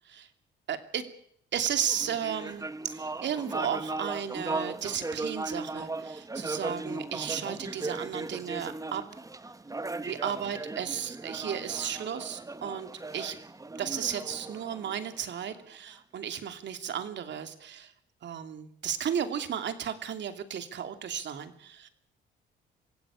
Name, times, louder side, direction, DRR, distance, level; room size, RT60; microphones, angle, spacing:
voice 1, 0.7-1.1 1.5-9.0 10.0-13.4 13.8-17.9 18.2-21.9, right 8 dB, 65° right, 8 dB, 2.8 m, -34 dB
sound 1, 1.9-15.6, right 2 dB, 15° right, 1.2 m, -37 dB
26.5 x 16.0 x 8.5 m, 0.69 s
cardioid pair, 90°, 20 cm